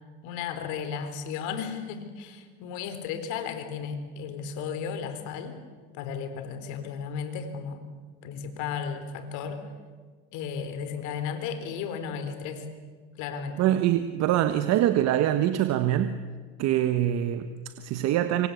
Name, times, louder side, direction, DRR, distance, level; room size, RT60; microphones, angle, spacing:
voice 1, 0.2-5.6 5.9-7.9 8.2-9.6 10.3-12.7 13.2-13.6, left 6 dB, 65° left, 9 dB, 4.2 m, -34 dB
voice 2, 13.6-16.2 16.6-18.5, right 12 dB, 55° right, 9 dB, 1.5 m, -24 dB
25.5 x 25.0 x 8.4 m, 1.5 s
supercardioid pair, 100°, 32 cm